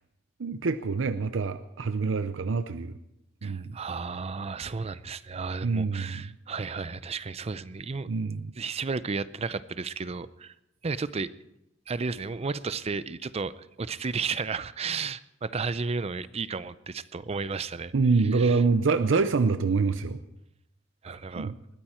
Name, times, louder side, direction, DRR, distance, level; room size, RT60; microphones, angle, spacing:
voice 1, 0.4-2.9 3.4-3.8 5.6-6.2 8.1-8.5 17.9-20.2 21.1-21.6, right 4 dB, 85° right, 11 dB, 0.6 m, -26 dB
voice 2, 3.4-10.5 10.8-11.3 11.9-17.9 18.3-18.6 21.0-21.5, right 4 dB, 35° right, 16 dB, 0.5 m, -33 dB
20.5 x 14.0 x 4.4 m, 0.86 s
head